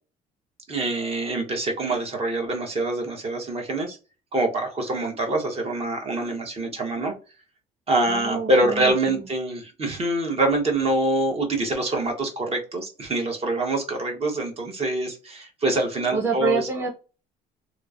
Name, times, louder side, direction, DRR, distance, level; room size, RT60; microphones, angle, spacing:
voice 1, 0.7-4.0 4.3-7.1 7.9-16.7, right 2 dB, 35° right, 2 dB, 1.0 m, -25 dB
voice 2, 8.1-9.3 16.1-16.9, right 5 dB, 15° right, -2 dB, 0.7 m, -27 dB
3.1 x 2.0 x 2.4 m, 0.33 s
cardioid pair, 110°, 17 cm